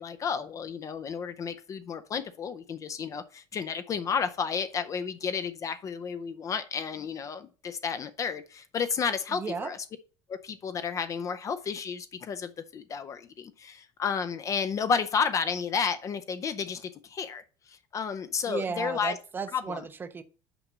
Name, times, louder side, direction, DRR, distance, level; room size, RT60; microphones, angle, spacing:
voice 1, 0.0-9.8 10.4-17.4 17.7-19.2 19.5-19.8, left 6 dB, 25° left, 0.5 m, -32 dB
voice 2, 9.3-9.7 18.5-20.2, right 5 dB, 15° right, 0.6 m, -34 dB
6.0 x 4.9 x 6.6 m
cardioid pair, 165°, 12 cm